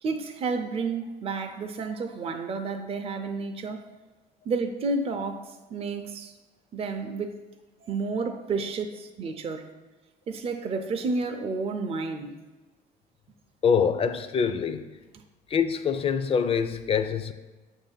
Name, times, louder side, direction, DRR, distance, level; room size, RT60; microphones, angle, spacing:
voice 1, 0.0-3.9 4.5-6.3 6.7-7.4 7.8-9.7 10.3-12.3, right 4 dB, 35° right, 5 dB, 0.5 m, -31 dB
voice 2, 13.6-15.0 15.5-17.3, left 6 dB, 35° left, 10 dB, 0.4 m, -25 dB
7.3 x 2.7 x 5.6 m, 1.2 s
cardioid pair, 110°, 17 cm